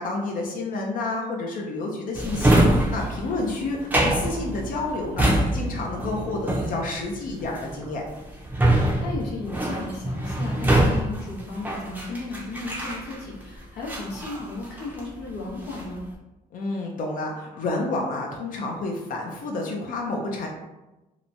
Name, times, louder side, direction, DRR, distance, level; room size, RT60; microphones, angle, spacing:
voice 1, 0.0-8.0 16.5-20.5, left 2 dB, 55° left, 0 dB, 0.5 m, -30 dB
Drawer open or close, 2.1-13.4 13.8-15.1 15.5-16.0, right 1 dB, 10° right, 0.5 m, -24 dB
voice 2, 3.2-3.5 8.7-16.0, left 2 dB, 85° left, -3 dB, 0.8 m, -35 dB
2.8 x 2.1 x 2.6 m, 1.0 s
cardioid pair, 110°, 17 cm